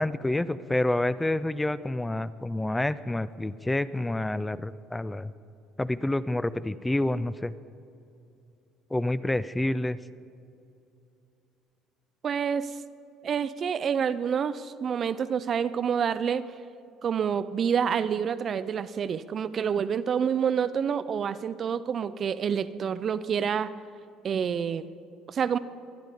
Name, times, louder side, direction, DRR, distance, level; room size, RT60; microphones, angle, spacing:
voice 1, 0.0-5.3 5.8-7.5 8.9-10.0, left 1 dB, 10° left, 15 dB, 0.5 m, -28 dB
voice 2, 12.2-12.8 13.2-16.5 17.0-23.7 24.2-24.9 25.3-25.6, right 7 dB, 45° right, 14 dB, 0.5 m, -28 dB
23.5 x 10.5 x 5.0 m, 2.7 s
figure-of-eight pair, 55°, 0 cm